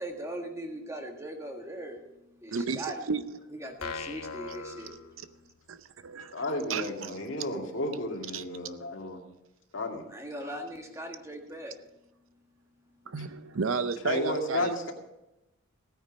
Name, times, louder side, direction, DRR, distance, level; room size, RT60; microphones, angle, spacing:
voice 1, 0.0-2.0 2.4-3.1 3.5-5.0 10.1-11.8, right 1 dB, 15° right, 3 dB, 1.6 m, -39 dB
voice 2, 2.5-3.2 5.7-6.3 6.7-7.1 8.3-8.4 13.1-14.7, right 5 dB, 70° right, 12 dB, 0.6 m, -32 dB
sound 1, 3.8-5.7, left 4 dB, 80° left, 1.2 m, -40 dB
voice 3, 6.3-9.2 9.7-10.0 13.2-13.3 14.0-14.9, left 1 dB, 60° left, 2 dB, 2.2 m, -32 dB
16.0 x 9.5 x 5.3 m, 0.90 s
head